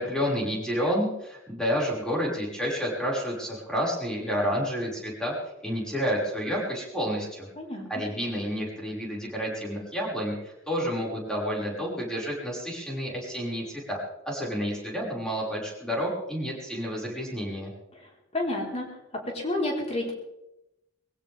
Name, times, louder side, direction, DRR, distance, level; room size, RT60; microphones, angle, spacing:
voice 1, 0.0-5.3 5.6-7.5 7.9-14.0 14.3-17.7, equal, 5° left, -4 dB, 6.0 m, -30 dB
voice 2, 17.9-18.9 19.3-20.1, left 1 dB, 35° left, -1 dB, 4.7 m, -30 dB
22.0 x 16.5 x 3.7 m, 0.88 s
head